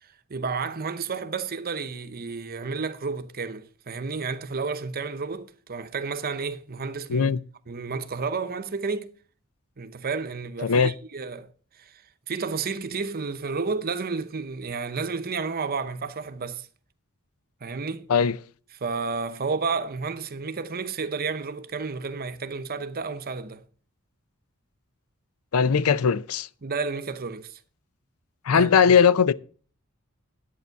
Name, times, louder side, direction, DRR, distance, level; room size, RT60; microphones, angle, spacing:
voice 1, 0.3-7.3 7.7-9.1 9.8-11.5 11.8-12.0 12.3-16.7 17.6-18.1 18.8-23.6 26.6-27.6 28.5-28.7, right 4 dB, 45° right, 0.8 m, -31 dB
voice 2, 10.6-10.9 18.1-18.4 25.5-26.5 28.5-29.3, left 6 dB, 90° left, 0.5 m, -19 dB
11.0 x 8.5 x 4.6 m
head